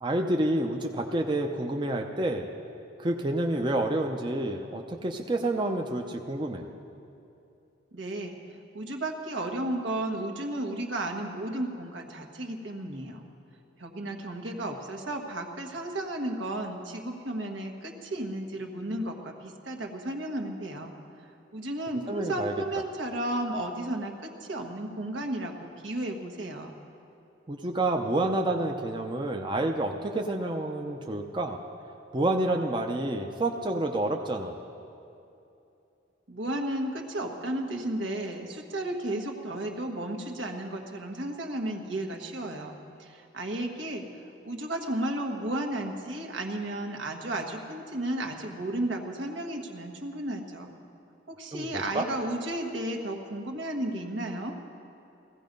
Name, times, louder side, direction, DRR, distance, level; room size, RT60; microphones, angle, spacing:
voice 1, 0.0-2.5 3.0-6.7 22.1-22.5 27.5-31.6 32.1-34.6 51.5-52.1, right 1 dB, 25° right, 3 dB, 0.6 m, -29 dB
voice 2, 7.9-8.4 8.7-13.2 13.8-20.9 21.5-26.7 36.3-44.0 44.4-50.7 51.3-54.5, right 1 dB, 75° right, 3 dB, 1.5 m, -33 dB
17.0 x 15.5 x 5.3 m, 2.8 s
head